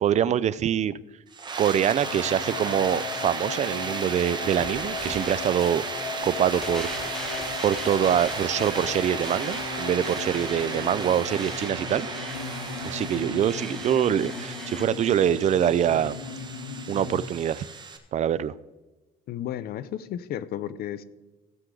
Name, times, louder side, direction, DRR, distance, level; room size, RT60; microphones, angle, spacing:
voice 1, 0.0-1.0 1.6-5.8 6.2-6.9 7.6-12.1 12.8-16.2 16.9-17.7 18.1-18.5, right 9 dB, 45° right, 18 dB, 0.4 m, -24 dB
sound 1, 1.3-18.0, right 4 dB, 25° right, 1.4 m, -35 dB
sound 2, 2.0-17.3, left 6 dB, 85° left, 1.0 m, -37 dB
sound 3, 4.6-14.8, equal, 5° left, 0.9 m, -42 dB
voice 2, 19.3-21.0, left 11 dB, 65° left, 16 dB, 0.6 m, -33 dB
16.0 x 7.5 x 3.8 m, 1.1 s
cardioid pair, 110°, 17 cm